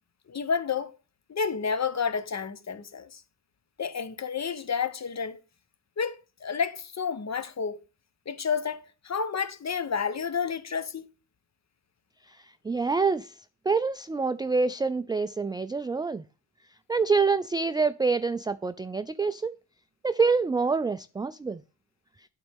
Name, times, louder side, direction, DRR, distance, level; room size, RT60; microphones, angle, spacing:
voice 1, 0.3-1.0 1.3-3.2 3.8-5.4 6.0-7.8 8.3-11.1, left 6 dB, 35° left, 0.9 m, -30 dB
voice 2, 12.6-13.3 13.7-16.2 16.9-19.5 20.0-21.6, right 4 dB, 10° right, 0.3 m, -26 dB
11.5 x 4.2 x 3.5 m
supercardioid pair, 45°, 45 cm